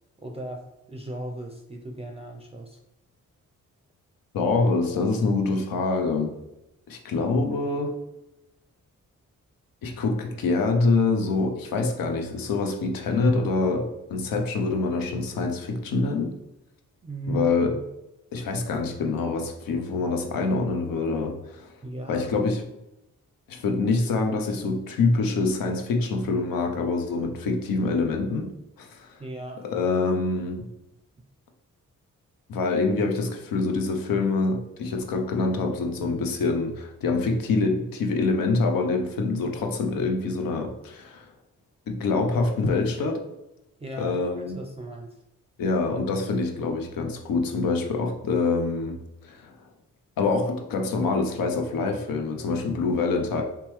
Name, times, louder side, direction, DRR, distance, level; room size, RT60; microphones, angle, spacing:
voice 1, 0.2-2.8 17.0-17.9 21.8-22.3 29.2-29.6 43.8-44.2 44.5-45.2, right 2 dB, 20° right, 2 dB, 0.5 m, -36 dB
voice 2, 4.3-6.3 6.9-8.0 9.8-16.4 17.3-17.8 18.3-21.8 22.1-22.7 23.5-29.2 29.6-30.7 32.5-41.3 41.9-43.2 44.0-44.6 45.6-49.7 50.2-53.4, left 3 dB, 80° left, 4 dB, 0.6 m, -25 dB
3.3 x 3.0 x 3.1 m, 0.90 s
supercardioid pair, 40°, 34 cm